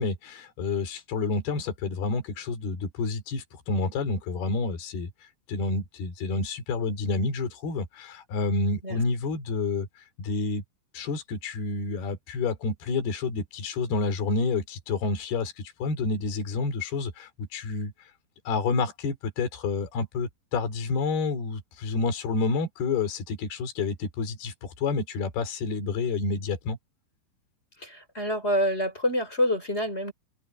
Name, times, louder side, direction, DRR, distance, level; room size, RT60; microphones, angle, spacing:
voice 1, 0.0-5.1 5.5-9.9 10.2-10.6 10.9-17.9 18.5-26.8, left 4 dB, 55° left, 5.6 m, -29 dB
voice 2, 27.8-30.1, equal, 15° left, 4.5 m, -27 dB
open air
omnidirectional pair, 5.6 m